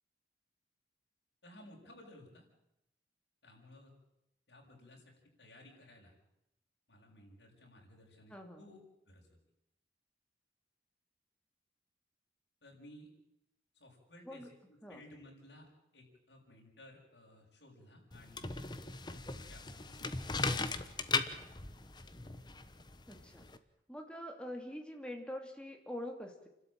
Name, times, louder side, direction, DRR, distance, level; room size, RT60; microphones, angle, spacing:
voice 1, 1.4-2.4 3.4-3.9 4.5-6.2 6.9-8.8 9.1-9.3 12.6-13.1 13.8-15.7 15.9-18.6 19.1-20.3, left 1 dB, 80° left, -1 dB, 6.9 m, -57 dB
sound 1, 18.1-23.6, left 4 dB, 25° left, 1.0 m, -38 dB
voice 2, 23.1-23.4 23.9-26.5, left 1 dB, 5° left, 3 dB, 2.8 m, -44 dB
29.0 x 12.5 x 8.9 m, 0.85 s
head